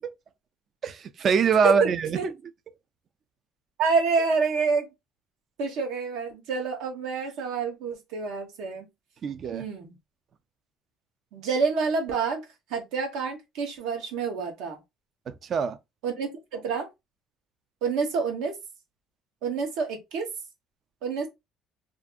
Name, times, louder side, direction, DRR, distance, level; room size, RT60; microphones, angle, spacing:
voice 1, 0.8-2.3 9.2-9.7 15.3-15.8, right 5 dB, 45° right, 0.3 m, -24 dB
voice 2, 1.6-2.2 3.8-4.9 5.6-8.9 9.5-9.9 11.3-12.4 12.7-14.8 16.0-16.9 17.8-18.5 19.4-20.2 21.0-21.3, right 5 dB, 80° right, 1.0 m, -28 dB
2.5 x 2.5 x 2.3 m
supercardioid pair, 95°, 0 cm